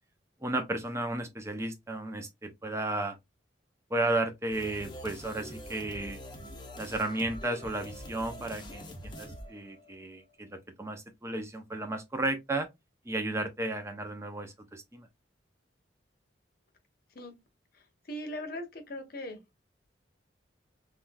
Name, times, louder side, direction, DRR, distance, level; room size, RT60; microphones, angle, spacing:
voice 1, 0.4-3.2 3.9-6.2 6.7-12.7 13.0-15.1, right 2 dB, 15° right, 0.6 m, -34 dB
sound 1, 4.5-10.2, equal, 25° left, 0.7 m, -45 dB
voice 2, 17.7-19.4, left 1 dB, 50° left, 0.9 m, -40 dB
3.5 x 2.3 x 2.6 m
head